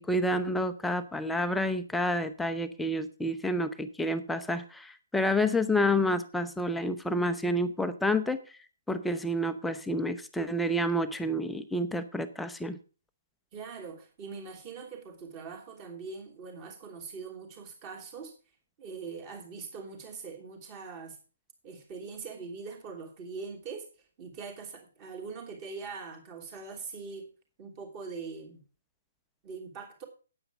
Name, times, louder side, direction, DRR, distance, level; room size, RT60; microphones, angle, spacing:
voice 1, 0.0-8.4 8.9-12.8, left 1 dB, 5° left, 0.7 m, -29 dB
voice 2, 13.5-18.3 18.8-21.2 21.6-23.9 24.2-27.3 27.6-28.6 29.4-30.1, right 5 dB, 25° right, 2.8 m, -42 dB
8.9 x 8.9 x 5.0 m
figure-of-eight pair, 135°, 0 cm